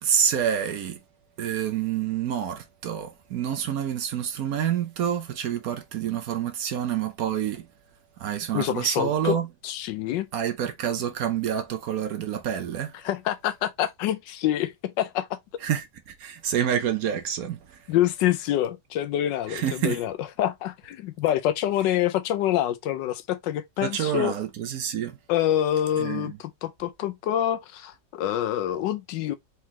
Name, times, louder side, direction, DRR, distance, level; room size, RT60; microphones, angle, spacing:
voice 1, 0.0-1.0 1.4-7.7 8.2-9.5 10.3-13.0 15.6-17.8 19.5-20.0 23.8-25.2 26.0-26.4, right 9 dB, 65° right, 1.0 m, -28 dB
voice 2, 8.5-9.4 9.6-10.3 13.0-15.4 17.9-24.3 25.3-29.4, left 12 dB, 90° left, 1.3 m, -26 dB
4.2 x 3.7 x 2.8 m
omnidirectional pair, 1.9 m